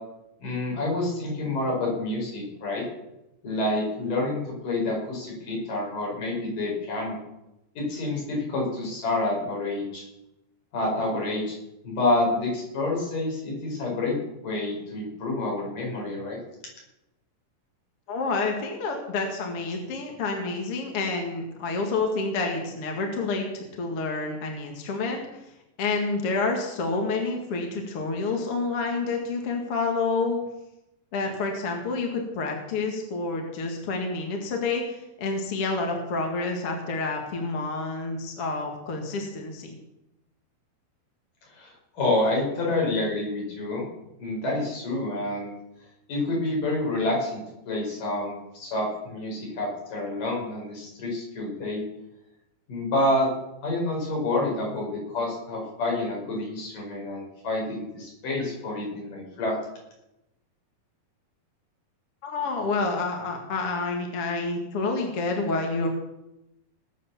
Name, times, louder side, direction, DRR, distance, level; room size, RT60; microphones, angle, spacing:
voice 1, 0.4-2.9 3.4-7.2 7.8-10.1 10.7-11.6 11.8-14.2 14.4-16.4 41.5-43.8 44.2-45.5 46.1-51.8 52.7-53.3 53.6-59.6, left 2 dB, 60° left, -2 dB, 6.9 m, -28 dB
voice 2, 18.1-25.4 25.8-30.4 31.1-39.7 62.2-65.9, left 3 dB, 45° left, 2 dB, 2.5 m, -28 dB
20.0 x 8.4 x 7.2 m, 0.91 s
omnidirectional pair, 4.2 m